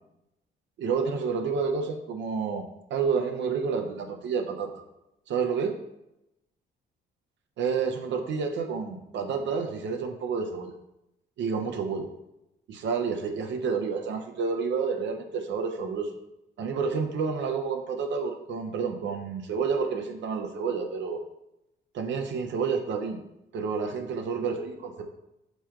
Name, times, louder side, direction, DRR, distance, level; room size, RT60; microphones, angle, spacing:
voice 1, 0.8-2.6 2.9-4.8 5.3-5.7 7.6-10.8 11.4-12.1 12.7-16.2 16.6-21.2 21.9-23.2 23.5-25.0, right 5 dB, 65° right, 5 dB, 0.5 m, -29 dB
6.0 x 2.2 x 2.3 m, 0.89 s
cardioid pair, 90°, 20 cm